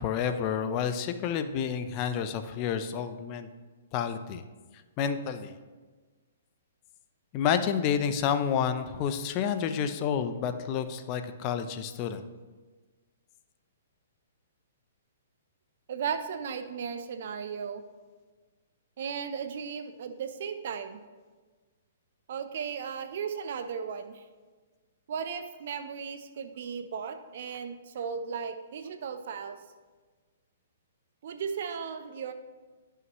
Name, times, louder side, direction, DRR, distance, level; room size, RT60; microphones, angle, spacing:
voice 1, 0.0-3.5 3.9-4.4 5.0-5.5 7.3-12.2, left 7 dB, 35° left, 9 dB, 0.5 m, -29 dB
voice 2, 15.9-17.8 19.0-21.0 22.3-24.3 25.1-29.6 31.2-32.3, right 6 dB, 60° right, 8 dB, 0.7 m, -36 dB
10.5 x 5.7 x 3.1 m, 1.4 s
hypercardioid pair, 140°, 0 cm